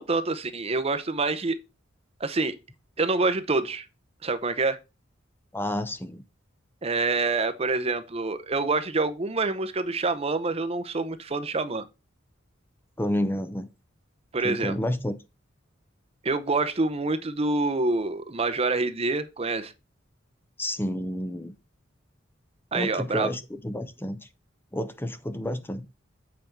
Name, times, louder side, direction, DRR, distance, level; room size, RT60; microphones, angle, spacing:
voice 1, 0.0-1.6 2.2-2.6 3.0-3.9 4.2-4.8 6.8-11.8 14.3-14.8 16.2-19.7 22.7-23.3, right 3 dB, 30° right, 0.7 m, -26 dB
voice 2, 5.5-6.2 13.0-13.7 14.4-15.1 20.6-21.5 22.7-24.3 24.7-25.9, left 1 dB, 10° left, 0.7 m, -30 dB
7.8 x 5.2 x 4.5 m
head